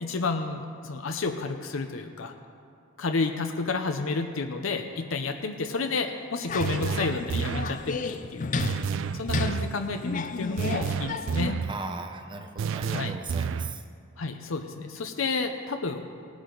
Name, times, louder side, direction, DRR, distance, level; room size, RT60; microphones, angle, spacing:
voice 1, 0.0-2.3 3.0-8.5 9.1-11.6 12.9-13.1 14.2-16.1, left 4 dB, 80° left, 5 dB, 0.7 m, -30 dB
sound 1, 6.5-11.5, left 4 dB, 40° left, 0.5 m, -33 dB
sound 2, 6.6-7.8 8.6-9.8 10.6-11.8 12.6-13.8, right 6 dB, 70° right, 0.3 m, -30 dB
voice 2, 8.5-9.2 11.7-13.8, right 2 dB, 25° right, 6 dB, 0.8 m, -38 dB
18.5 x 9.8 x 3.9 m, 2.4 s
head